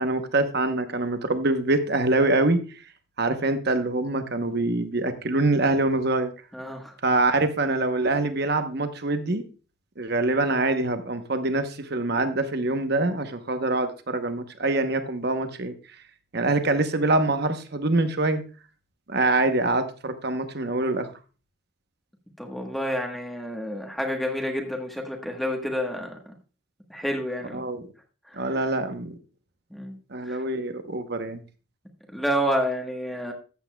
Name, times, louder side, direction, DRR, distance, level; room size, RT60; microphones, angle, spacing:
voice 1, 0.0-2.6 3.2-6.3 7.0-9.4 10.0-15.7 16.3-18.4 19.1-21.1 27.5-27.8 28.3-29.2 30.1-31.4, right 2 dB, 50° right, 0.9 m, -24 dB
voice 2, 6.5-6.9 22.4-26.2 26.9-27.6 29.7-30.0 30.3-30.4 32.1-33.3, equal, ahead, 1.2 m, -29 dB
14.0 x 8.4 x 2.3 m
head